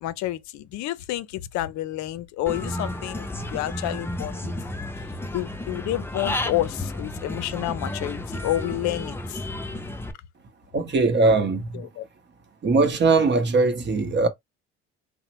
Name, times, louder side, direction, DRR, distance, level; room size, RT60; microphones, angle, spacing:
voice 1, 0.0-4.5 5.3-9.4 11.7-12.0, left 14 dB, 60° left, 0.5 m, -29 dB
Human voice / Bird, 2.5-10.1, left 1 dB, 10° left, 0.4 m, -32 dB
voice 2, 10.7-11.7 12.6-14.3, right 3 dB, 35° right, 0.8 m, -20 dB
2.8 x 2.0 x 2.9 m
hypercardioid pair, 65°, 32 cm